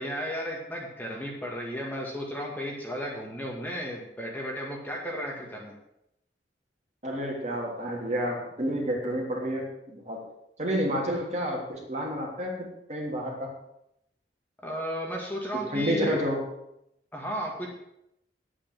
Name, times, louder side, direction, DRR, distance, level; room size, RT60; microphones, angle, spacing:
voice 1, 0.0-5.7 14.6-16.2 17.1-17.7, equal, 10° left, -2 dB, 2.0 m, -34 dB
voice 2, 7.0-10.2 10.6-13.5 15.7-16.4, equal, 40° right, -1 dB, 3.2 m, -30 dB
10.0 x 8.8 x 7.5 m, 0.80 s
head